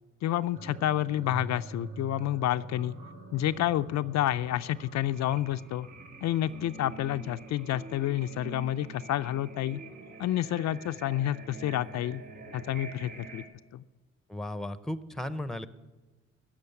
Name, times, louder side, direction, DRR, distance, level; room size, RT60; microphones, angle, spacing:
voice 1, 0.2-2.9 3.3-5.9 6.2-9.8 10.2-12.2 12.5-13.4 13.7-13.8, left 13 dB, 65° left, 11 dB, 0.4 m, -29 dB
sound 1, 0.5-13.4, right 4 dB, 75° right, 2.4 m, -45 dB
voice 2, 14.3-15.7, left 1 dB, ahead, 13 dB, 0.7 m, -35 dB
14.5 x 6.4 x 9.5 m, 1.2 s
cardioid pair, 90°, 30 cm